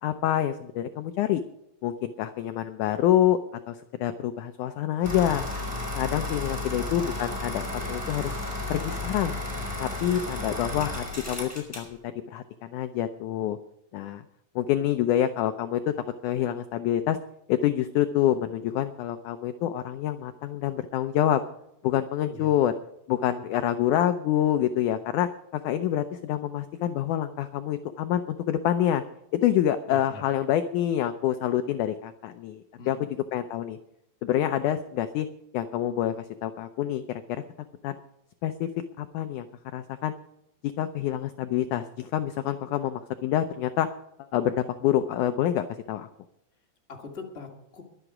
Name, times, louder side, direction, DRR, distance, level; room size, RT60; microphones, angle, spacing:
voice 1, 0.0-1.4 1.8-3.4 3.7-5.5 6.0-8.3 8.7-9.4 9.8-13.6 13.9-14.2 14.6-15.9 16.2-17.2 17.5-21.4 21.8-22.7 23.1-25.3 25.6-29.0 29.3-33.8 34.2-35.3 35.5-37.4 37.8-38.0 38.4-38.7 39.0-39.5 39.7-40.1 40.8-43.9 44.3-46.1, left 11 dB, 80° left, 9 dB, 1.8 m, -27 dB
sound 1, 5.0-11.9, left 2 dB, 5° left, 5.0 m, -33 dB
voice 2, 22.2-22.5 23.2-23.4 29.9-30.2 32.8-33.1 46.9-47.8, left 2 dB, 20° left, 1 dB, 1.8 m, -43 dB
22.5 x 8.0 x 4.9 m, 0.80 s
omnidirectional pair, 4.2 m